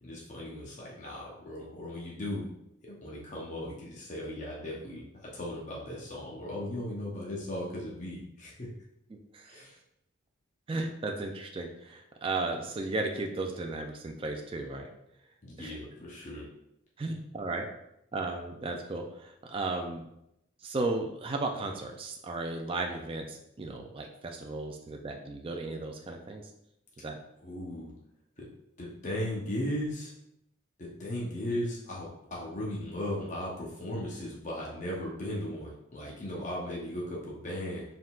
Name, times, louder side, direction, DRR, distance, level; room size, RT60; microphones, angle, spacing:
voice 1, 0.0-2.5 2.8-8.7 9.5-9.8 15.4-16.5 27.4-27.9 28.4-28.5 28.8-30.1 30.8-37.8, left 1 dB, 35° left, -4 dB, 0.7 m, -37 dB
voice 2, 9.1-9.6 10.7-14.9 15.6-15.8 17.0-17.7 18.1-20.1 20.6-26.4 27.0-27.2, right 2 dB, 25° right, 3 dB, 0.3 m, -35 dB
4.4 x 3.7 x 2.3 m, 0.80 s
head